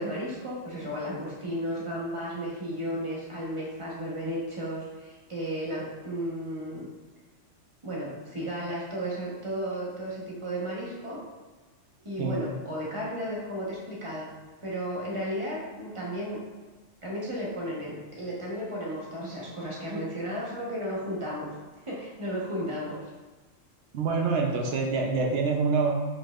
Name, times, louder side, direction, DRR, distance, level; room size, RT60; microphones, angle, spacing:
voice 1, 0.0-6.9 7.8-11.2 12.0-14.3 14.6-16.4 17.0-21.5 21.8-23.0, equal, 25° right, -5 dB, 1.1 m, -34 dB
voice 2, 23.9-26.0, right 4 dB, 65° right, 1 dB, 0.9 m, -26 dB
4.9 x 4.5 x 2.4 m, 1.2 s
omnidirectional pair, 1.3 m